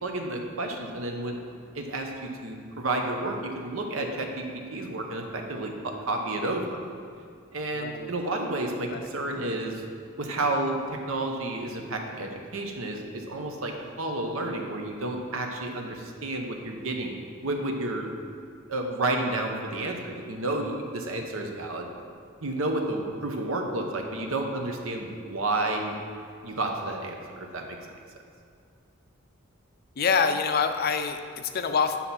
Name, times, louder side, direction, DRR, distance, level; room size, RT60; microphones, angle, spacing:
voice 1, 0.0-1.4 1.7-6.8 7.5-9.8 10.2-17.1 17.4-18.1 18.7-21.9 22.4-26.0 26.4-27.8, right 2 dB, 80° right, 2 dB, 1.0 m, -31 dB
voice 2, 7.7-8.1 8.9-9.1 30.0-32.0, left 5 dB, 45° left, 8 dB, 0.5 m, -26 dB
9.8 x 5.8 x 4.2 m, 2.3 s
head